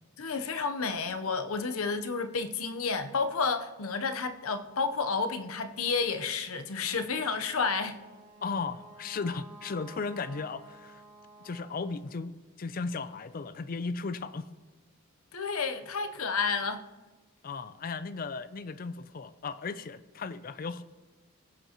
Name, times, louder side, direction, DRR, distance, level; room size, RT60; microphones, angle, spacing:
voice 1, 0.2-8.0 15.3-16.8, left 4 dB, 85° left, 0.8 m, -31 dB
Wind instrument woodwind instrument, 7.2-12.1, right 2 dB, 35° right, 2.7 m, -52 dB
voice 2, 8.4-11.0 11.4-14.5 17.4-20.8, left 4 dB, 40° left, 0.4 m, -36 dB
20.5 x 8.0 x 2.9 m
head